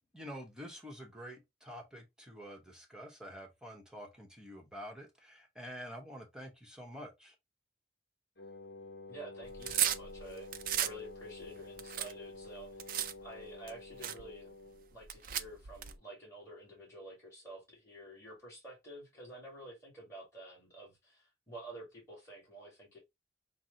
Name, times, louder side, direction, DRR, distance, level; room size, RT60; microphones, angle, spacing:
voice 1, 0.1-7.3, equal, 5° right, 0.9 m, -48 dB
Wind instrument woodwind instrument, 8.4-14.9, left 3 dB, 60° left, 0.7 m, -50 dB
voice 2, 9.1-10.5 10.8-14.5 14.9-23.0, right 1 dB, 15° left, 1.9 m, -50 dB
sound 1, 9.4-11.0 11.4-13.1 13.7-13.8 14.0-14.2 15.0-15.9, right 10 dB, 50° right, 0.4 m, -34 dB
5.9 x 2.0 x 3.7 m
head